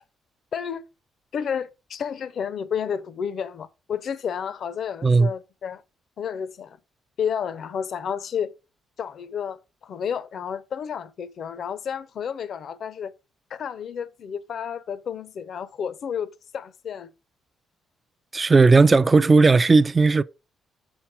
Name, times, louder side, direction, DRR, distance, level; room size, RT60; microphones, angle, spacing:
voice 1, 0.5-0.8 1.3-5.8 6.2-6.8 7.2-8.5 9.0-13.1 13.5-17.1, left 7 dB, 60° left, 0.6 m, -31 dB
voice 2, 18.3-20.2, right 3 dB, 25° right, 0.4 m, -16 dB
7.2 x 4.6 x 4.4 m
cardioid pair, 90°, 0 cm